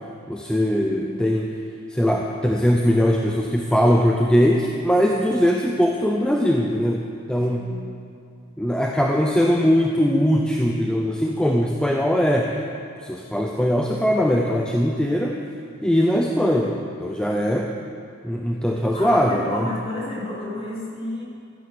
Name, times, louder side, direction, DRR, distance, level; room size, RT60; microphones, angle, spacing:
voice 1, 0.3-1.5 1.9-7.0 7.3-7.7 8.6-12.6 13.0-15.4 15.8-17.7 18.2-19.7, equal, 5° left, 0 dB, 0.6 m, -21 dB
voice 2, 7.3-7.9 18.9-21.2, left 1 dB, 30° left, -6 dB, 3.6 m, -31 dB
14.0 x 10.0 x 6.9 m, 2.4 s
head